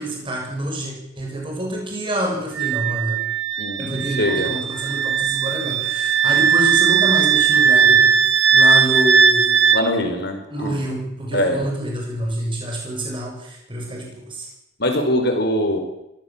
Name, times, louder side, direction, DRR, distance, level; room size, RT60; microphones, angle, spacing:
voice 1, 0.0-3.2 3.8-8.2 8.5-9.6 10.5-14.5, right 1 dB, 25° right, 0 dB, 6.8 m, -27 dB
Wind instrument woodwind instrument, 2.6-9.8, right 6 dB, 60° right, 1.6 m, -17 dB
voice 2, 3.6-4.6 9.7-10.8 11.3-11.6 14.8-15.8, left 1 dB, 55° left, 4 dB, 5.1 m, -22 dB
24.0 x 17.0 x 7.6 m, 0.86 s
head